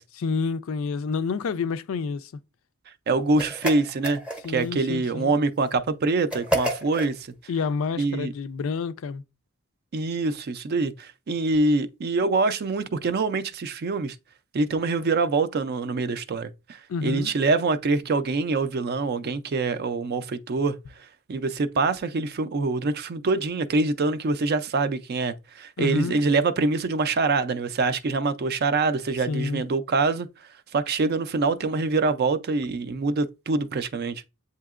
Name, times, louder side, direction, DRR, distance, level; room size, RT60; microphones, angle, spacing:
voice 1, 0.2-2.3 4.4-5.3 7.5-9.2 16.9-17.3 25.8-26.2 29.3-29.6, left 4 dB, 65° left, 0.3 m, -28 dB
voice 2, 3.1-4.2 4.5-7.3 8.0-8.3 9.9-14.2 14.5-20.8 21.3-30.3 30.7-34.2, right 3 dB, 45° right, 0.4 m, -25 dB
sound 1, 3.4-4.7 6.3-7.1, equal, 5° right, 0.6 m, -29 dB
7.9 x 2.8 x 2.4 m
head